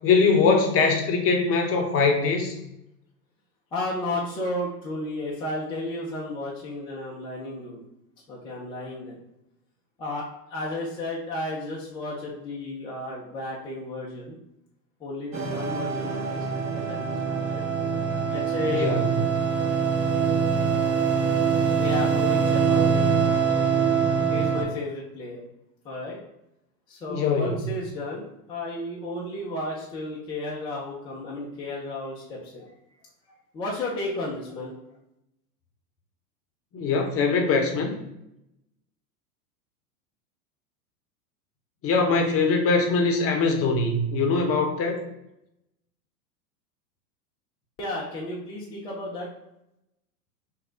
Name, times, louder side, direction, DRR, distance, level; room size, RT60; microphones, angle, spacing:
voice 1, 0.0-2.5 18.7-19.2 27.1-27.6 36.7-38.0 41.8-45.0, left 4 dB, 30° left, 3 dB, 0.7 m, -22 dB
voice 2, 3.7-7.8 8.3-9.2 10.0-14.4 15.0-17.6 18.3-18.9 21.7-23.0 24.3-25.4 25.8-26.2 26.9-32.7 33.5-34.8 47.8-49.3, left 2 dB, 10° left, -5 dB, 0.3 m, -33 dB
sound 1, 15.3-24.6, right 6 dB, 30° right, 0.7 m, -24 dB
3.0 x 2.3 x 3.8 m, 0.83 s
hypercardioid pair, 100°, 47 cm